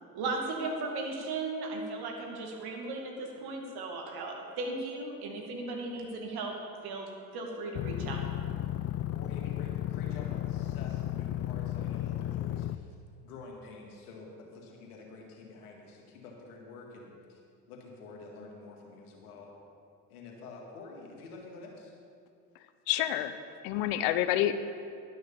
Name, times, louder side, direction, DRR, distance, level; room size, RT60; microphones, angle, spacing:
voice 1, 0.1-6.5 6.8-8.2, right 3 dB, 60° right, 1 dB, 2.2 m, -36 dB
sound 1, 7.7-12.7, left 12 dB, 35° left, 0.4 m, -34 dB
voice 2, 9.1-13.0 13.2-17.4 17.7-19.5 20.1-21.9, left 3 dB, 90° left, -1 dB, 2.1 m, -48 dB
voice 3, 22.9-23.4 23.6-24.5, left 13 dB, 70° left, 11 dB, 0.8 m, -28 dB
11.5 x 6.4 x 7.0 m, 2.4 s
hypercardioid pair, 75°, 44 cm